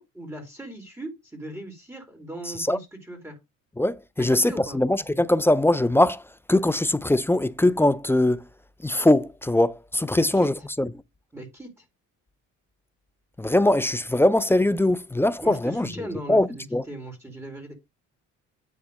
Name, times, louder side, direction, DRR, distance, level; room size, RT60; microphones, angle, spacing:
voice 1, 0.0-3.4 4.3-4.8 10.1-10.5 11.3-11.8 15.4-17.7, right 1 dB, 10° right, 2.7 m, -39 dB
voice 2, 3.8-6.2 6.5-8.4 8.8-10.9 13.4-15.9 16.3-16.8, left 1 dB, 5° left, 0.4 m, -21 dB
9.8 x 3.6 x 5.1 m
cardioid pair, 100°, 32 cm